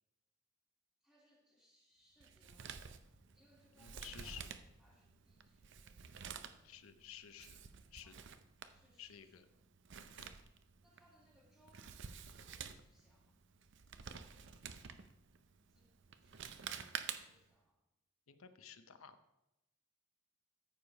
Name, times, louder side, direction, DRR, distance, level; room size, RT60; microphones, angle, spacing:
voice 1, 1.0-2.8 3.3-4.5 4.8-6.7 8.0-8.2 8.7-9.4 10.8-13.3 14.2-15.1 15.7-17.8, equal, ahead, -7 dB, 2.6 m, -72 dB
Male speech man speaking, 2.2-17.5, right 7 dB, 55° right, 0.6 m, -51 dB
voice 2, 3.7-4.5 6.6-7.6 7.9-8.1 9.0-9.5 10.1-10.3 18.3-19.2, left 9 dB, 80° left, 10 dB, 0.7 m, -54 dB
13.5 x 4.8 x 5.3 m, 0.93 s
head